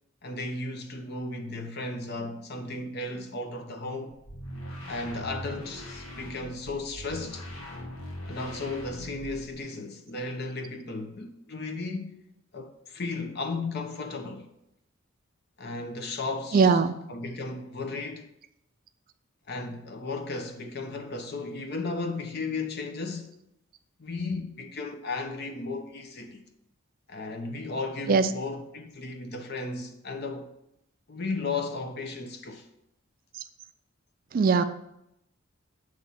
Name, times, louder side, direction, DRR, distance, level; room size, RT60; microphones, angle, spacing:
voice 1, 0.2-4.2 4.9-7.5 8.3-12.1 12.5-14.5 15.6-16.8 17.1-18.3 19.5-23.4 24.0-26.4 27.1-30.5 31.1-32.7, left 3 dB, 50° left, 0.7 m, -35 dB
sound 1, 4.3-9.6, left 1 dB, 75° left, 1.1 m, -41 dB
voice 2, 16.5-17.0 28.1-28.3 34.3-34.6, right 5 dB, 45° right, 0.3 m, -20 dB
7.0 x 3.1 x 5.7 m
head